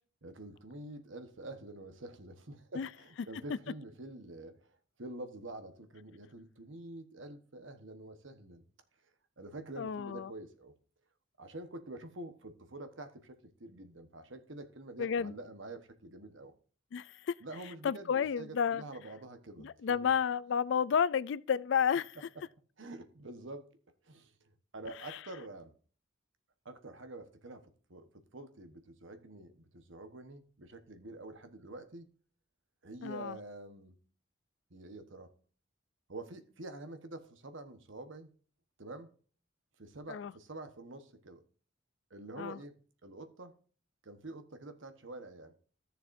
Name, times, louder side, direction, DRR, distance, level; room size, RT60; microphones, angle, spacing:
voice 1, 0.2-4.7 5.0-8.6 9.4-10.7 11.4-16.5 17.4-20.1 22.4-22.5 22.8-23.7 24.0-25.7 26.6-32.1 32.8-34.0 34.7-35.3 36.1-38.3 38.8-39.1 39.8-41.4 42.1-42.8 43.0-43.6 44.0-45.6, right 2 dB, 70° right, 1.2 m, -47 dB
voice 2, 9.8-10.3 15.0-15.3 16.9-17.4 17.8-18.8 19.6-22.2 25.1-25.2 33.0-33.4 40.1-40.3 42.4-42.6, left 7 dB, 60° left, 0.3 m, -31 dB
14.0 x 6.9 x 2.6 m
head